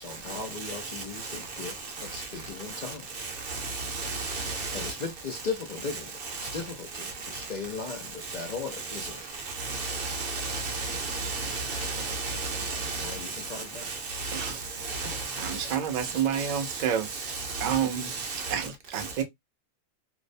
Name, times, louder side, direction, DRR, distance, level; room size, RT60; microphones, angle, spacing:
voice 1, 0.0-3.2 4.7-9.2 13.0-13.9 17.8-18.1, left 5 dB, 75° left, 0.4 m, -38 dB
voice 2, 1.3-1.7 3.1-4.9 6.2-6.6 6.9-7.1 8.3-8.4 8.9-9.1 9.5-14.5 14.8-16.8 17.1-18.6, right 3 dB, 55° right, 0.7 m, -34 dB
voice 3, 15.4-18.1 18.5-19.2, right 9 dB, 80° right, 0.4 m, -29 dB
2.6 x 2.1 x 2.4 m
omnidirectional pair, 1.4 m